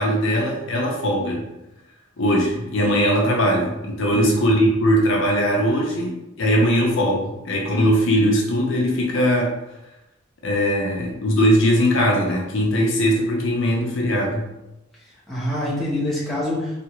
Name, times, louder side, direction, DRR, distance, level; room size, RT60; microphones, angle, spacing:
voice 1, 0.0-1.5 2.2-9.6 10.4-14.5, equal, 65° left, -1 dB, 0.6 m, -20 dB
voice 2, 14.9-16.8, left 1 dB, ahead, -8 dB, 0.9 m, -26 dB
3.3 x 2.5 x 2.9 m, 0.93 s
head